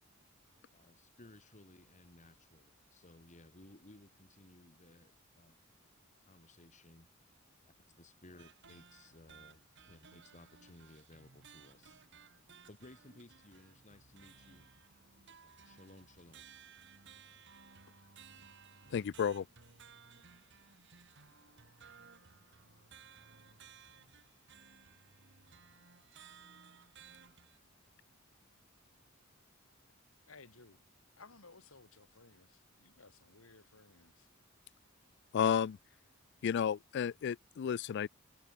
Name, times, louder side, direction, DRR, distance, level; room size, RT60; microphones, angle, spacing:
voice 1, 0.7-5.6 6.3-7.1 7.6-11.9 12.7-14.7 15.4-16.5, left 1 dB, 35° left, 2.4 m, -59 dB
sound 1, 8.4-27.6, right 6 dB, 60° right, 2.2 m, -59 dB
voice 2, 18.9-19.5 35.3-35.8 36.4-38.1, left 8 dB, 55° left, 0.3 m, -32 dB
voice 3, 30.3-30.8 31.2-34.3, left 3 dB, 80° left, 2.7 m, -59 dB
head